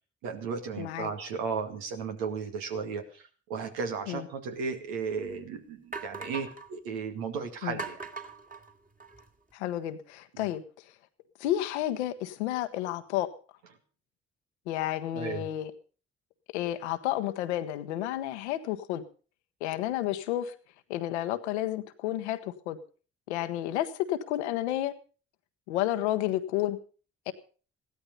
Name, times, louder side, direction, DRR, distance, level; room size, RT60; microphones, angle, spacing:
voice 1, 0.2-3.0 3.5-8.1 15.1-15.5, right 5 dB, 80° right, 5 dB, 2.3 m, -34 dB
voice 2, 0.8-1.1 4.1-4.3 7.6-7.8 9.5-10.6 11.4-13.3 14.7-15.7 16.5-19.0 19.6-20.5 20.9-22.8 23.3-24.9 25.7-26.8 27.3-27.4, left 13 dB, 85° left, 10 dB, 1.1 m, -31 dB
sound 1, 4.6-4.7 5.3-5.4 5.9-6.7 7.8-9.3, right 4 dB, 25° right, 2.6 m, -40 dB
16.0 x 13.0 x 5.4 m, 0.39 s
hypercardioid pair, 45°, 33 cm